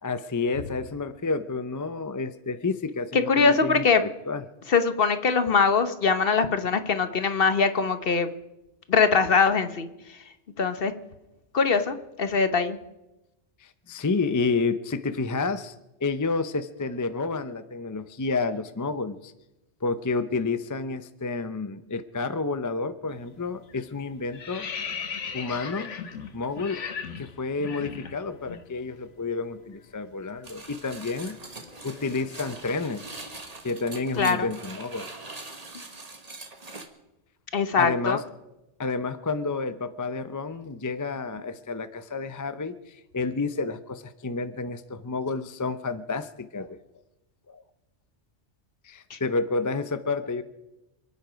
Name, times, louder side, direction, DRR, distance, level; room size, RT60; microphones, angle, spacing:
voice 1, 0.0-4.4 13.6-15.7 16.0-19.3 19.8-24.7 25.3-26.0 26.3-26.8 27.1-31.4 31.8-33.2 33.6-35.1 37.8-38.2 38.8-46.8 47.5-47.6 48.8-50.4, left 3 dB, 20° left, 11 dB, 0.5 m, -30 dB
voice 2, 3.3-4.0 4.7-8.3 8.9-9.9 10.6-10.9 11.5-12.8 34.2-34.5 37.5-38.2 49.1-49.2, left 5 dB, 55° left, 10 dB, 1.2 m, -22 dB
sound 1, 23.1-23.4 23.7-28.6 28.9-29.1 29.4-33.5, left 6 dB, 80° left, 1.5 m, -39 dB
sound 2, 30.4-36.9, right 3 dB, 35° right, 1.4 m, -42 dB
28.0 x 9.3 x 5.1 m, 0.96 s
omnidirectional pair, 1.2 m